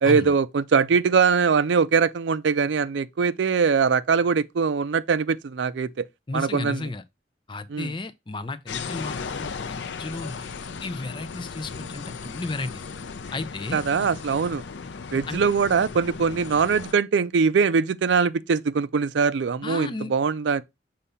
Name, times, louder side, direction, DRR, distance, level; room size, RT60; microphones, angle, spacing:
voice 1, 0.0-6.1 6.3-6.8 7.7-7.9 13.7-14.6 15.1-20.6, right 5 dB, 80° right, 0.4 m, -22 dB
voice 2, 6.3-7.0 7.5-10.5 10.8-12.8 13.3-13.8 15.3-15.4 19.6-20.1, left 3 dB, 25° left, 0.5 m, -33 dB
sound 1, 8.7-16.9, left 5 dB, 80° left, 0.5 m, -36 dB
6.8 x 2.7 x 5.5 m
head